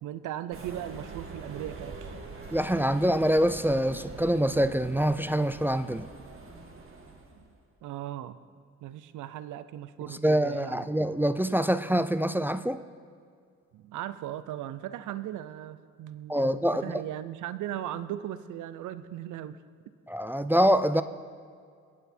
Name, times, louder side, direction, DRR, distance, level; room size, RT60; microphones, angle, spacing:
voice 1, 0.0-2.2 7.5-7.6 7.8-8.4 8.8-10.9 13.7-19.6, right 12 dB, 80° right, 14 dB, 0.7 m, -38 dB
sound 1, 0.5-7.5, right 3 dB, 45° right, 2.2 m, -44 dB
voice 2, 2.5-6.1 10.1-12.8 16.3-17.0 20.1-21.0, equal, 5° right, 11 dB, 0.4 m, -25 dB
24.0 x 9.2 x 4.4 m, 2.2 s
cardioid pair, 90°, 30 cm